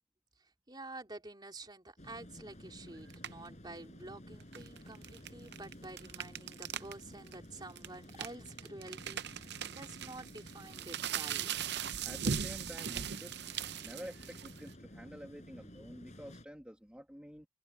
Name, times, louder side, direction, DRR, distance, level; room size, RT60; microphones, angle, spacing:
voice 1, 0.4-11.6, right 2 dB, 20° right, 3.5 m, -49 dB
sound 1, 2.0-16.5, equal, 35° left, 5.3 m, -53 dB
sound 2, 3.1-3.5 4.4-6.9 7.3-7.4 7.8-14.7, right 8 dB, 55° right, 0.7 m, -39 dB
voice 2, 12.0-13.4 13.8-17.5, equal, 5° right, 1.6 m, -49 dB
head